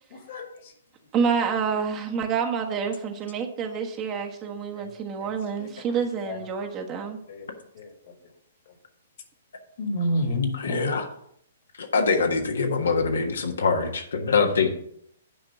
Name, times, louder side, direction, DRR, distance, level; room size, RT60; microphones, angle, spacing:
voice 1, 0.1-0.7 4.7-4.9 5.2-5.3 5.6-5.7 6.2-6.4 7.3-7.5 7.7-8.1 9.8-10.9, left 1 dB, 50° left, 5 dB, 2.1 m, -30 dB
voice 2, 1.1-7.2, right 6 dB, 30° right, 3 dB, 1.3 m, -28 dB
voice 3, 10.5-11.0 11.8-14.7, left 4 dB, 75° left, 4 dB, 1.4 m, -24 dB
9.6 x 5.1 x 5.9 m, 0.70 s
figure-of-eight pair, 120°, 0 cm